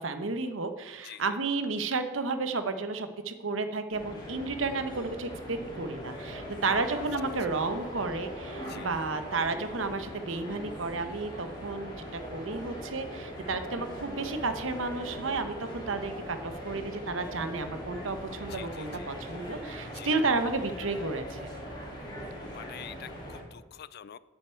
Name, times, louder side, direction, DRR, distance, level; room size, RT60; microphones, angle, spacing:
voice 1, 0.0-21.4, right 3 dB, 70° right, 9 dB, 1.0 m, -32 dB
sound 1, 3.9-23.4, equal, 25° left, 3.9 m, -41 dB
voice 2, 18.5-19.1 19.9-20.1 22.4-24.2, left 10 dB, 55° left, 17 dB, 0.4 m, -46 dB
9.0 x 6.8 x 8.4 m, 1.2 s
head